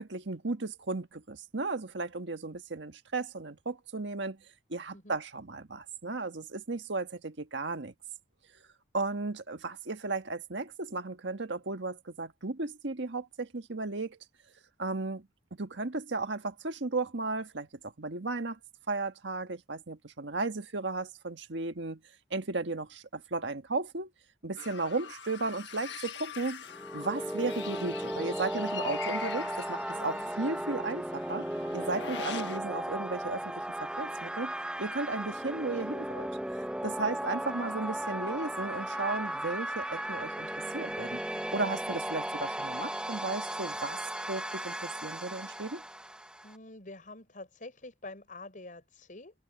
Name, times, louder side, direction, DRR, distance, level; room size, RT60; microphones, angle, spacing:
voice 1, 0.0-4.4 4.7-7.9 8.9-14.2 14.8-18.6 18.9-22.0 22.3-24.1 24.4-26.6 26.9-31.4 31.7-34.5 34.8-36.3 36.8-41.2 41.5-44.0 44.3-45.8, right 3 dB, 80° right, 1.6 m, -35 dB
sound 1, 24.6-32.6, left 7 dB, 70° left, 1.5 m, -43 dB
sound 2, 26.7-46.6, right 1 dB, 5° right, 1.1 m, -36 dB
voice 2, 29.9-30.3 37.0-37.1 46.4-49.3, left 2 dB, 45° left, 5.7 m, -47 dB
head